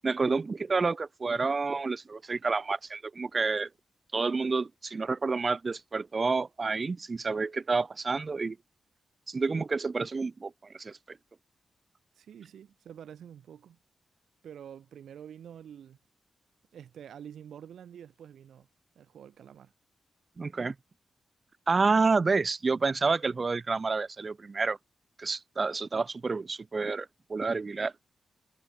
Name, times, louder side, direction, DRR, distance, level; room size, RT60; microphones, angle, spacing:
voice 1, 0.0-3.7 4.1-8.6 9.3-11.2 20.4-20.7 21.7-24.8 25.2-27.9, right 4 dB, 45° right, 0.6 m, -29 dB
voice 2, 12.1-13.8 14.4-16.0 16.7-18.7 19.0-19.7, right 9 dB, 85° right, 5.7 m, -47 dB
cardioid pair, 55°, 0 cm